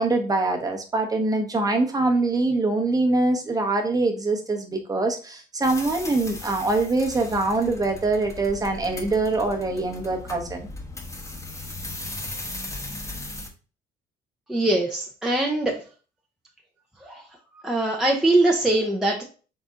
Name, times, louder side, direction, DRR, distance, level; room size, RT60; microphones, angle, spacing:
voice 1, 0.0-10.7, right 2 dB, 20° right, 3 dB, 1.0 m, -24 dB
sound 1, 5.6-13.5, left 2 dB, 20° left, 1.0 m, -37 dB
voice 2, 14.5-15.8 17.0-17.2 17.5-19.2, right 2 dB, 5° right, -1 dB, 0.7 m, -22 dB
4.0 x 3.4 x 3.6 m, 0.36 s
cardioid pair, 110°, 17 cm